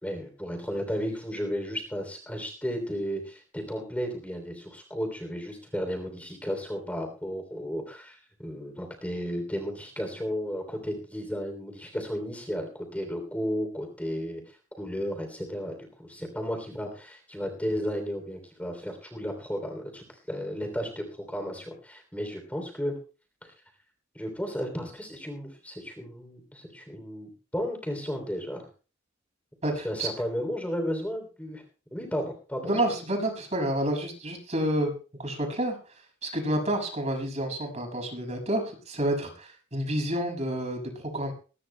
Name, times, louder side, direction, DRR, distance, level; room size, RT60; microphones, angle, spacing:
voice 1, 0.0-14.4 14.8-22.9 23.4-23.5 24.1-28.7 29.8-31.6 31.9-32.8, equal, 10° left, 3 dB, 3.1 m, -34 dB
voice 2, 29.6-30.1 32.6-34.9 35.2-35.8 36.2-41.3, right 1 dB, 35° right, 4 dB, 6.3 m, -29 dB
22.0 x 19.0 x 2.2 m, 0.37 s
head